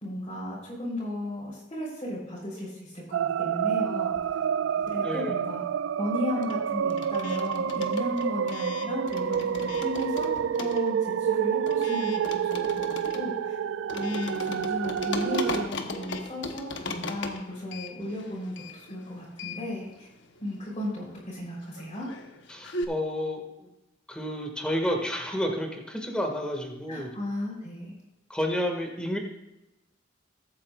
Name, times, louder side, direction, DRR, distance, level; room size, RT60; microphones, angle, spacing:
voice 1, 0.0-4.2 4.9-5.6 6.0-13.6 13.9-20.1 20.4-22.1 26.9-28.0, left 1 dB, 30° left, -8 dB, 3.7 m, -35 dB
sound 1, 3.1-15.7, right 8 dB, 75° right, 0.3 m, -28 dB
sound 2, 4.0-5.3 5.5-22.8, left 3 dB, 65° left, 1.0 m, -39 dB
voice 2, 5.0-5.3 22.5-23.7 24.1-27.1 28.3-29.2, equal, 5° left, 2 dB, 1.9 m, -30 dB
21.0 x 8.8 x 2.4 m, 0.93 s
head